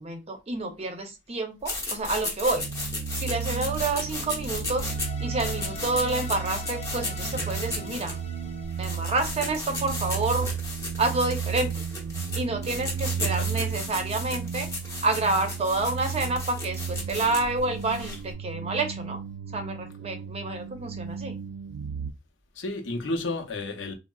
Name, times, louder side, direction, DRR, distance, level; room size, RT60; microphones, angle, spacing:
voice 1, 0.0-2.7 3.1-4.9 5.2-8.2 8.8-10.5 11.0-11.8 12.3-19.2 19.5-21.4, right 2 dB, 35° right, 0.6 m, -29 dB
sound 1, 1.6-18.3, left 2 dB, 20° left, 0.7 m, -35 dB
sound 2, 2.5-22.1, right 7 dB, 90° right, 0.3 m, -34 dB
sound 3, 4.7-9.9, left 6 dB, 35° left, 0.3 m, -44 dB
voice 2, 13.2-13.6 22.5-23.9, left 2 dB, 85° left, 0.7 m, -32 dB
3.6 x 2.0 x 2.2 m
head